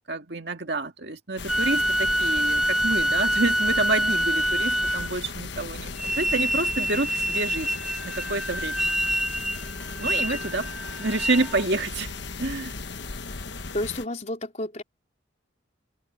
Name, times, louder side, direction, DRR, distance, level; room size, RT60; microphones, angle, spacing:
voice 1, 0.1-7.7 8.0-8.8 10.0-10.7 11.0-12.1 12.4-12.8, right 2 dB, 60° right, 2.2 m, -28 dB
sound 1, 1.4-14.1, left 4 dB, 65° left, 1.2 m, -37 dB
sound 2, 1.5-5.3 6.0-11.6, equal, ahead, 1.5 m, -26 dB
voice 2, 13.7-14.8, left 1 dB, 35° left, 4.2 m, -31 dB
head